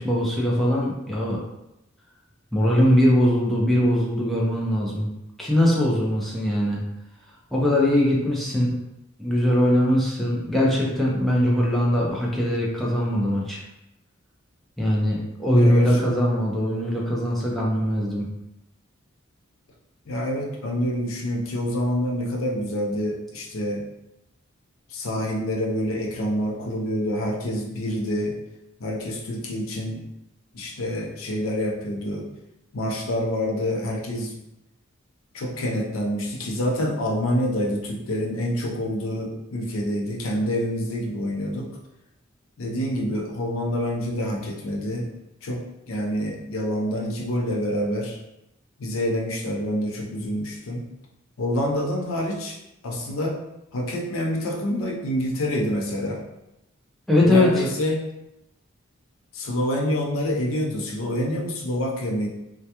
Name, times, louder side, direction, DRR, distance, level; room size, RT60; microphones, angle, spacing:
voice 1, 0.0-1.4 2.5-5.1 5.4-6.8 7.5-8.7 9.2-13.6 14.8-18.3 57.1-57.6, left 1 dB, ahead, -5 dB, 0.4 m, -21 dB
voice 2, 15.5-16.0 20.1-23.8 24.9-28.4 28.8-30.0 30.5-32.3 32.7-34.3 35.3-41.7 42.6-45.1 45.4-48.2 48.8-50.8 51.4-52.6 52.8-53.4 53.7-56.2 57.2-58.0 59.3-62.3, equal, 80° left, 0 dB, 0.5 m, -27 dB
2.2 x 2.1 x 2.8 m, 0.88 s
head